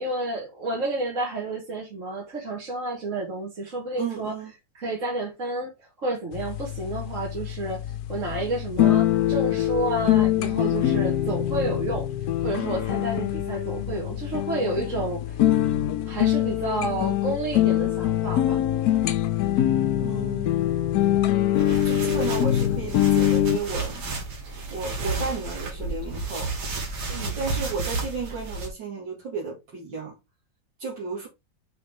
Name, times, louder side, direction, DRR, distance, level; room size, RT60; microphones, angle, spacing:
voice 1, 0.0-4.4 4.8-5.7 6.0-12.1 12.4-15.4 16.1-18.6 27.1-27.4, right 2 dB, 45° right, 2.1 m, -30 dB
voice 2, 4.0-4.5 20.0-20.6 21.5-24.1 24.7-26.5 27.4-30.2 30.8-31.3, right 4 dB, 85° right, 2.9 m, -33 dB
sound 1, 6.3-23.6, left 12 dB, 65° left, 1.1 m, -24 dB
sound 2, 21.5-28.7, right 3 dB, 65° right, 2.3 m, -32 dB
6.5 x 5.5 x 3.6 m
omnidirectional pair, 1.9 m